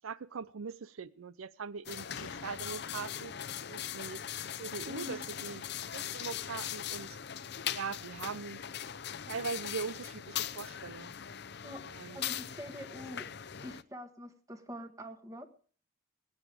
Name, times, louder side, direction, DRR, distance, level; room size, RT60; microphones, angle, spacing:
voice 1, 0.0-3.3 3.7-4.2 4.6-5.7 5.9-7.2 7.7-8.6 9.3-11.1 11.9-12.2, right 5 dB, 90° right, 18 dB, 0.6 m, -41 dB
sound 1, 1.9-13.8, left 9 dB, 55° left, 0.7 m, -40 dB
Slam, 2.2-5.6 5.9-6.0, left 5 dB, 85° left, 1.1 m, -54 dB
voice 2, 4.9-5.2 11.6-13.3 13.6-15.5, left 1 dB, 15° right, 8 dB, 1.5 m, -45 dB
21.5 x 9.2 x 4.9 m, 0.43 s
head